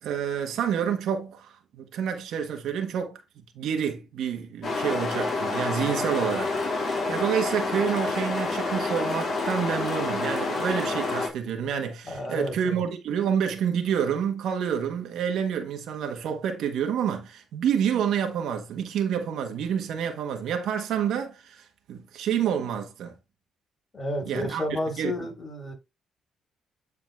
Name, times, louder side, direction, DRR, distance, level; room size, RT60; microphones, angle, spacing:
voice 1, 0.0-3.2 3.5-6.5 7.1-23.1 24.2-25.1, right 8 dB, 80° right, 1.5 m, -28 dB
sound 1, 4.6-11.3, left 3 dB, 50° left, 3.7 m, -28 dB
voice 2, 12.0-12.8 23.9-25.7, left 1 dB, 25° left, 5.4 m, -31 dB
9.7 x 4.1 x 3.5 m
cardioid pair, 90°, 0 cm